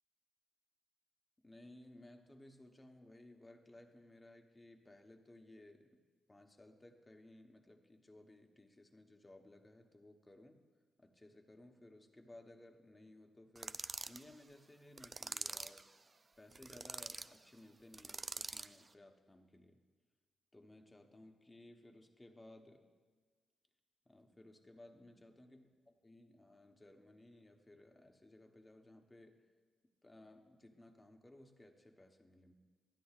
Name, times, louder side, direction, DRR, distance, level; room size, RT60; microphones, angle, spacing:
voice 1, 1.4-6.0 6.3-10.6 11.0-15.8 16.4-19.8 20.5-22.9 24.0-29.5 30.0-32.5, left 1 dB, 20° left, 5 dB, 1.0 m, -59 dB
sound 1, 13.6-14.2 15.0-15.8 16.5-17.3 17.9-18.8, right 3 dB, 35° right, 0.3 m, -44 dB
13.0 x 9.7 x 2.4 m, 1.4 s
cardioid pair, 65°, 0 cm